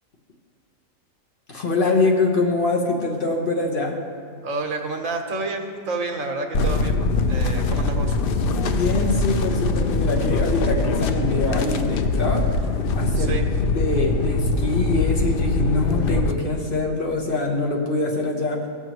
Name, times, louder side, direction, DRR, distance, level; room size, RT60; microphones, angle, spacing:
voice 1, 1.5-4.0 8.7-12.4 12.9-13.3 13.7-18.6, left 3 dB, 45° left, 0 dB, 1.1 m, -24 dB
voice 2, 4.4-8.1 13.1-13.4, right 3 dB, 75° right, 3 dB, 1.4 m, -29 dB
sound 1, 6.5-16.3, left 3 dB, 60° left, 0.6 m, -22 dB
16.5 x 6.9 x 3.0 m, 2.2 s
omnidirectional pair, 1.4 m